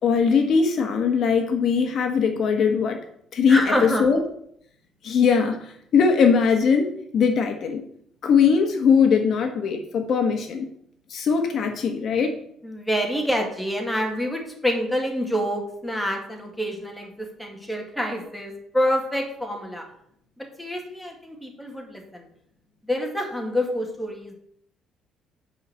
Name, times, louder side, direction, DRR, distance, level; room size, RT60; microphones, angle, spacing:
voice 1, 0.0-3.0 3.3-4.2 5.0-7.8 8.2-10.7 11.1-12.4, left 6 dB, 50° left, 5 dB, 1.2 m, -20 dB
voice 2, 3.5-4.1 12.6-19.8 20.4-22.2 22.9-24.4, equal, 5° left, 1 dB, 2.0 m, -27 dB
9.1 x 5.6 x 6.9 m, 0.71 s
cardioid pair, 145°, 0 cm